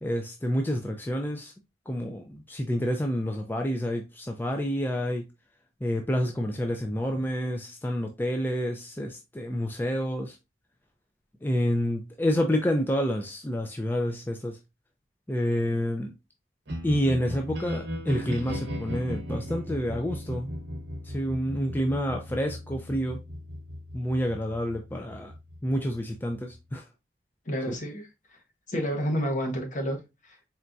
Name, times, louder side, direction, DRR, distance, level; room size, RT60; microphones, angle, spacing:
voice 1, 0.0-1.5 1.9-5.3 5.8-10.4 11.4-14.6 15.3-16.1 16.8-20.5 21.0-23.2 23.9-25.3 25.6-26.8 27.7-27.8, equal, 10° left, 0.4 m, -28 dB
sound 1, 16.7-26.7, equal, 80° right, 1.0 m, -37 dB
voice 2, 27.5-28.1 28.7-30.0 30.2-30.4, equal, 50° left, 1.0 m, -29 dB
4.3 x 3.4 x 2.6 m
head